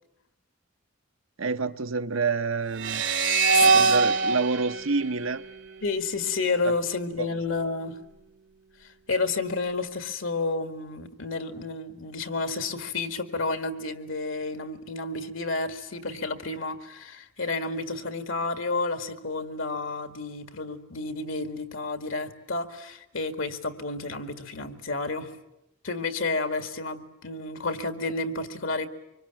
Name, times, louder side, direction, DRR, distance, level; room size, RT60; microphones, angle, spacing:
voice 1, 1.4-3.1 3.6-5.4 6.6-6.7 7.2-7.3, right 4 dB, 85° right, 0.9 m, -28 dB
sound 1, 2.8-6.1, right 4 dB, 65° right, 1.2 m, -23 dB
voice 2, 3.5-3.9 5.8-8.0 8.8-25.3 25.8-28.9, left 3 dB, 80° left, 2.0 m, -31 dB
25.5 x 23.5 x 9.0 m
head